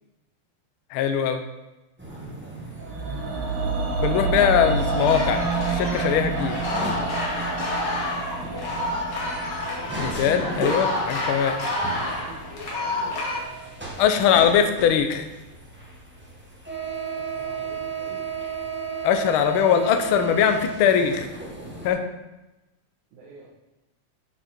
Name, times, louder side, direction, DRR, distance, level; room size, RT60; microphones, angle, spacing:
voice 1, 0.9-1.4 4.0-6.6 10.0-11.5 14.0-15.3 19.0-21.3 21.8-22.0, left 8 dB, 70° left, 7 dB, 1.2 m, -21 dB
sound 1, 2.0-21.9, right 4 dB, 10° right, 0.8 m, -36 dB
voice 2, 2.1-3.9 8.6-9.0 11.9-14.1 17.1-18.2 23.1-23.5, right 4 dB, 80° right, -5 dB, 2.7 m, -47 dB
sound 2, 2.8-12.9 13.2-13.3, right 4 dB, 65° right, 2.3 m, -29 dB
sound 3, 4.8-13.4, left 2 dB, 50° left, 2.4 m, -29 dB
11.0 x 6.3 x 4.3 m, 1.0 s
omnidirectional pair, 3.3 m